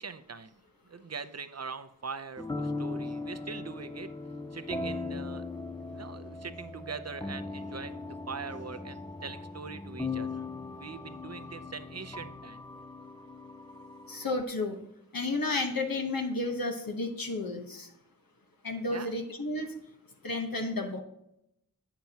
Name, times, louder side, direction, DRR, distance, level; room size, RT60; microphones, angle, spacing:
voice 1, 0.0-4.1 4.5-5.4 5.9-10.5 10.8-12.6 18.9-19.1, right 5 dB, 50° right, 11 dB, 0.6 m, -42 dB
sound 1, 2.4-14.4, left 3 dB, 15° left, 0.4 m, -39 dB
voice 2, 14.1-14.8 15.1-17.9 18.6-19.7 20.2-21.0, left 2 dB, 80° left, 3 dB, 1.1 m, -32 dB
8.9 x 7.4 x 2.9 m, 0.79 s
wide cardioid pair, 50°, 34 cm